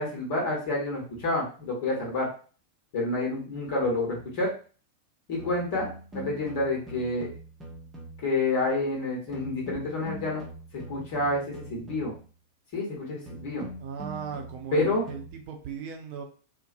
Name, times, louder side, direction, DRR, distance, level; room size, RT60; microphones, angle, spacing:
voice 1, 0.0-2.3 2.9-4.5 5.3-7.3 8.2-10.4 10.7-12.1 12.7-13.6 14.7-15.1, left 2 dB, 50° left, -2 dB, 1.1 m, -29 dB
sound 1, 4.2-4.5 5.4-8.4 9.3-12.3 13.3-15.4, right 1 dB, 15° right, 0.7 m, -43 dB
voice 2, 13.8-16.2, right 7 dB, 45° right, 4 dB, 0.6 m, -37 dB
2.6 x 2.2 x 2.6 m, 0.39 s
figure-of-eight pair, 90°, 0 cm